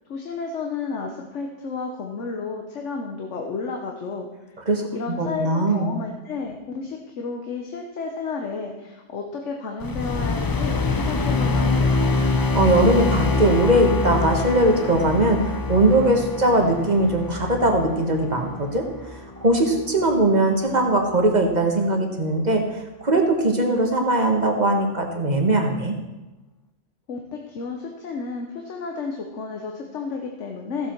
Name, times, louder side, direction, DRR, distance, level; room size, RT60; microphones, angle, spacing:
voice 1, 0.1-4.3 4.9-12.0 27.1-30.9, left 4 dB, 70° left, 2 dB, 1.3 m, -32 dB
voice 2, 5.2-5.9 12.5-18.8 19.4-22.6 23.0-26.0, right 1 dB, 35° right, 2 dB, 1.5 m, -20 dB
sound 1, 9.8-20.3, left 3 dB, 35° left, 0.3 m, -25 dB
15.0 x 7.6 x 4.5 m, 1.0 s
omnidirectional pair, 1.3 m